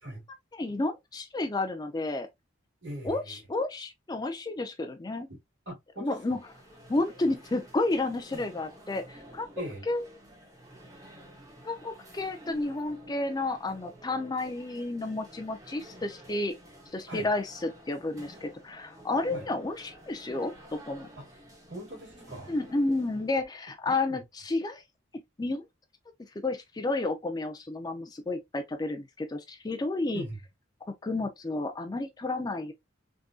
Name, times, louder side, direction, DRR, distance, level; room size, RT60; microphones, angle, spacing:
voice 1, 0.6-2.3 3.0-5.3 6.0-6.4 6.9-9.5 9.9-10.0 11.6-16.5 16.9-21.1 22.5-24.8 25.4-25.6 26.4-30.2 31.0-32.7, left 2 dB, 20° left, 0.4 m, -31 dB
voice 2, 2.8-3.4 5.7-6.2 9.6-9.9 17.1-17.3 19.3-19.4 21.2-21.3 21.7-22.5 23.9-24.2 30.1-30.4, right 1 dB, 60° right, 1.9 m, -40 dB
sound 1, 6.0-23.4, right 1 dB, 15° right, 0.8 m, -51 dB
3.6 x 2.6 x 2.3 m
head